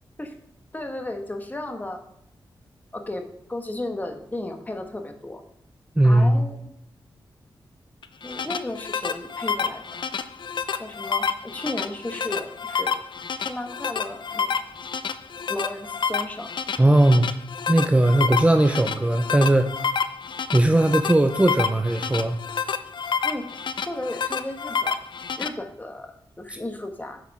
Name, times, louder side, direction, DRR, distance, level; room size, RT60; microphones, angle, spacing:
voice 1, 0.7-2.0 2.9-5.4 6.0-6.7 8.2-10.0 10.8-12.9 13.4-14.6 15.5-16.5 23.2-23.6 23.9-25.0 25.4-27.2, left 1 dB, 20° left, 5 dB, 1.2 m, -34 dB
voice 2, 6.0-6.4 16.8-17.3 17.7-19.7 20.5-22.3, right 1 dB, 15° right, 6 dB, 0.6 m, -18 dB
sound 1, 8.0-25.5, left 6 dB, 65° left, 0.5 m, -29 dB
8.1 x 5.8 x 4.8 m, 0.76 s
cardioid pair, 75°, 9 cm